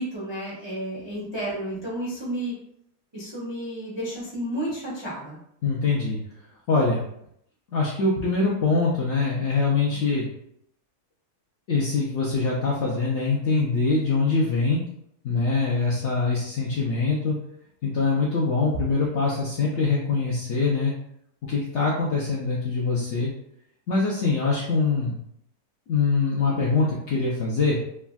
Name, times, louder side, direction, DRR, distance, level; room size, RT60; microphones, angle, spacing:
voice 1, 0.0-2.6 3.1-5.4, right 1 dB, 40° right, -7 dB, 0.4 m, -31 dB
voice 2, 5.6-6.2 6.7-7.0 7.7-10.3 11.7-14.8 15.2-17.4 17.8-20.9 21.5-23.3 23.9-25.2 25.9-27.8, left 4 dB, 70° left, -5 dB, 0.6 m, -23 dB
3.3 x 2.1 x 2.3 m, 0.74 s
omnidirectional pair, 1.7 m